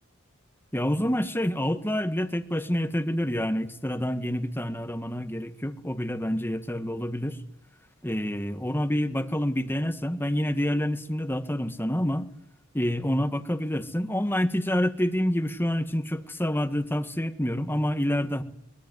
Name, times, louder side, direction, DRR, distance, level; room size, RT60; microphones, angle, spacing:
voice 1, 0.7-7.4 8.0-12.3 12.7-18.4, equal, 10° left, 8 dB, 1.7 m, -27 dB
23.5 x 20.5 x 9.6 m, 0.76 s
head